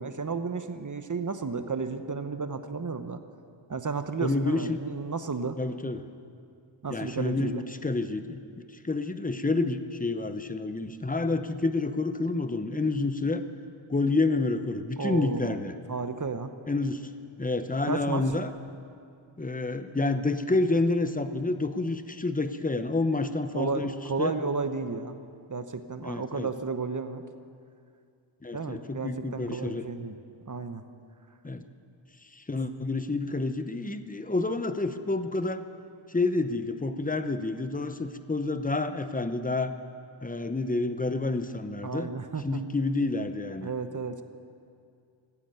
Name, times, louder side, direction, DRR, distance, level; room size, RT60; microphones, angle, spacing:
voice 1, 0.0-3.2 3.7-5.6 6.8-7.6 15.0-15.6 15.9-16.5 17.9-18.2 23.5-25.2 25.5-27.2 28.5-30.2 30.5-30.8 41.8-42.6 43.6-44.2, right 4 dB, 40° right, 9 dB, 0.9 m, -33 dB
voice 2, 4.2-4.8 5.6-6.1 6.9-8.4 8.8-13.4 13.9-15.7 16.7-17.1 17.4-18.5 19.4-23.9 24.2-24.4 26.0-26.5 28.4-29.9 31.4-31.6 32.3-35.6 36.1-39.8 40.2-42.1 42.4-43.7, left 3 dB, 15° left, 9 dB, 0.8 m, -29 dB
15.5 x 9.9 x 9.3 m, 2.4 s
wide cardioid pair, 90°, 48 cm